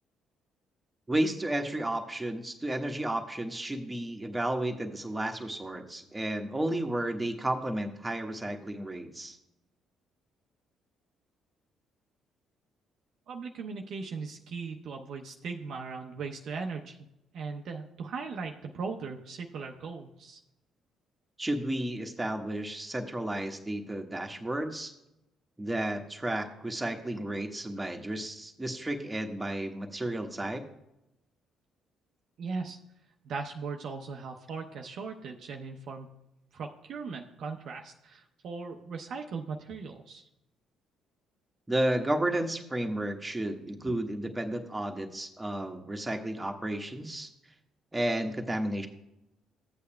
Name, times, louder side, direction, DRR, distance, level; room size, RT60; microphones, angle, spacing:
voice 1, 1.1-9.4 21.4-24.9 25.6-30.6 41.7-47.3 47.9-48.9, right 1 dB, 15° right, 4 dB, 1.2 m, -32 dB
voice 2, 13.3-17.0 17.3-20.4 32.4-32.8 33.2-36.1 36.5-40.3 43.9-44.0, right 4 dB, 60° right, 2 dB, 0.7 m, -38 dB
14.0 x 8.3 x 2.2 m, 0.86 s
hypercardioid pair, 45°, 0 cm